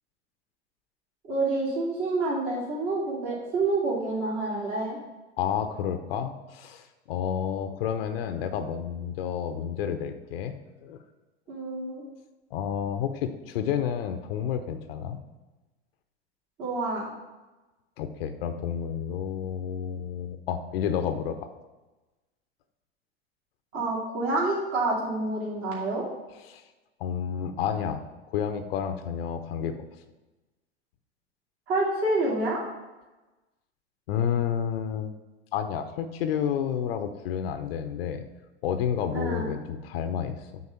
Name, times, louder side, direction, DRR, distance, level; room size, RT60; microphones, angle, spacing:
voice 1, 1.2-5.0 11.5-12.0 16.6-17.1 23.7-26.1 31.7-32.6 39.1-39.5, right 2 dB, 40° right, -5 dB, 2.6 m, -28 dB
voice 2, 5.4-10.5 10.8-11.0 12.5-15.2 18.0-21.5 26.4-26.6 27.0-28.0 28.3-29.9 34.1-35.1 35.5-38.2 38.6-40.6, left 8 dB, 60° left, 8 dB, 0.7 m, -30 dB
8.5 x 4.0 x 5.7 m, 1.1 s
figure-of-eight pair, 85°, 34 cm